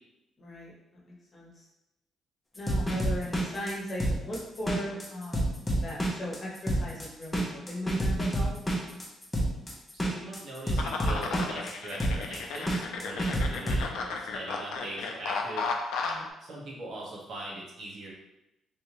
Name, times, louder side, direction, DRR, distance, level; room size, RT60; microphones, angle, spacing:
voice 1, 0.4-0.7 1.1-1.7 2.5-5.4 5.7-8.5 16.0-16.2, equal, 40° left, -4 dB, 1.2 m, -38 dB
sound 1, 2.6-13.9, right 1 dB, 15° left, 0.9 m, -29 dB
voice 2, 9.9-15.7 16.4-18.1, right 1 dB, 60° right, -5 dB, 1.1 m, -41 dB
sound 2, 10.8-16.3, left 4 dB, 85° left, 0.4 m, -34 dB
3.4 x 2.8 x 3.0 m, 0.92 s
cardioid pair, 90°, 0 cm